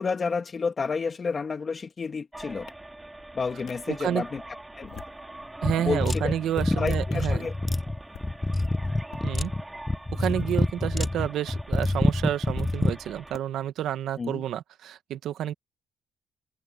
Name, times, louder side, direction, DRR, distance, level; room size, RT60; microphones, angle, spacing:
voice 1, 0.0-2.7 3.3-4.4 4.8-4.9 5.8-6.3 6.8-7.5 14.2-14.4, left 5 dB, 40° left, 1.7 m, -30 dB
sound 1, 2.3-13.4, right 1 dB, 10° right, 2.5 m, -44 dB
Muffled Hit Claps, 2.7-2.8 3.7-3.8 4.7-5.2 5.7-6.2 7.1-7.3 8.0-8.3 9.0-9.3 10.1-10.6 11.5-11.6 12.6-12.7 13.3-13.4, left 10 dB, 70° left, 2.2 m, -46 dB
voice 2, 3.9-4.2 5.6-7.4 9.2-9.5 10.1-15.5, right 11 dB, 75° right, 1.3 m, -30 dB
sound 2, 5.6-13.0, left 2 dB, 15° left, 1.0 m, -27 dB
cardioid pair, 90°, 0 cm